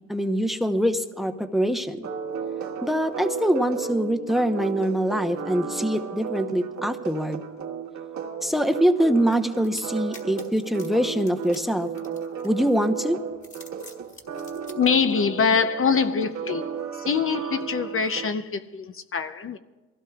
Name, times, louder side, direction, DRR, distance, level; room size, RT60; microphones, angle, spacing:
voice 1, 0.1-2.1 2.8-7.4 8.4-11.9 12.4-13.2, equal, ahead, 8 dB, 0.9 m, -24 dB
sound 1, 2.0-18.3, right 6 dB, 70° right, 1.7 m, -34 dB
sound 2, 9.3-12.8 13.3-14.8, left 2 dB, 25° left, 2.1 m, -47 dB
voice 2, 14.7-16.7 17.1-19.6, left 6 dB, 45° left, 9 dB, 0.7 m, -24 dB
22.5 x 16.5 x 2.4 m, 1.2 s
cardioid pair, 90°, 30 cm